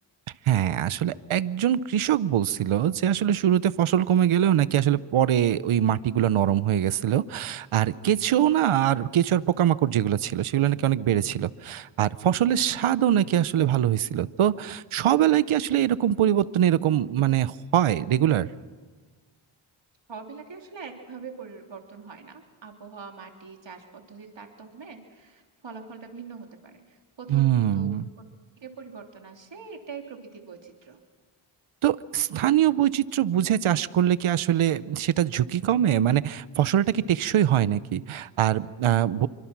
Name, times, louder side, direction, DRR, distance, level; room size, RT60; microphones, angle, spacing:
voice 1, 0.5-18.5 27.3-28.1 31.8-39.3, right 11 dB, 85° right, 16 dB, 0.8 m, -23 dB
voice 2, 20.1-27.9 28.6-31.0, right 5 dB, 65° right, 3 dB, 3.3 m, -43 dB
27.0 x 24.5 x 6.1 m, 1.4 s
cardioid pair, 65°, 48 cm